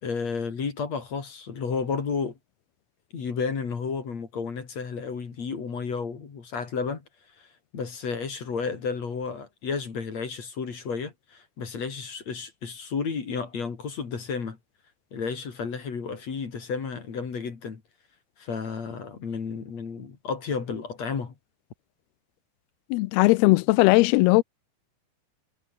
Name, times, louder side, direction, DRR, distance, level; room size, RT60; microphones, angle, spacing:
voice 1, 0.0-2.4 3.1-7.0 7.4-7.5 7.7-14.6 15.1-17.8 18.4-21.3, left 5 dB, 45° left, 3.9 m, -32 dB
voice 2, 22.9-24.4, left 22 dB, 80° left, 2.3 m, -18 dB
omnidirectional pair, 4.8 m